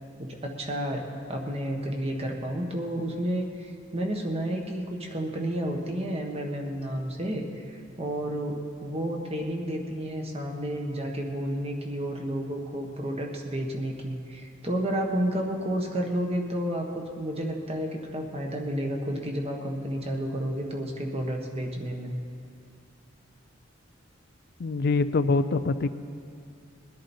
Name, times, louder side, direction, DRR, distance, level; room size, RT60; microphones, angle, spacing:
voice 1, 0.2-1.0 1.3-22.1, right 1 dB, 35° right, 1 dB, 1.4 m, -31 dB
voice 2, 24.6-25.9, left 3 dB, 55° left, 11 dB, 0.4 m, -24 dB
21.0 x 10.5 x 4.4 m, 2.4 s
head